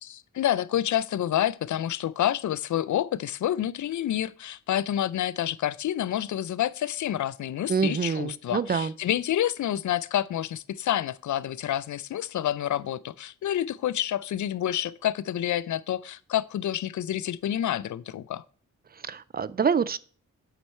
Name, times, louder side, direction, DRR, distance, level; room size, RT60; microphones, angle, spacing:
voice 1, 0.0-18.4, left 11 dB, 60° left, 0.5 m, -28 dB
voice 2, 7.7-8.9 19.0-20.0, right 6 dB, 30° right, 0.4 m, -26 dB
8.0 x 4.3 x 4.4 m
cardioid pair, 50°, 33 cm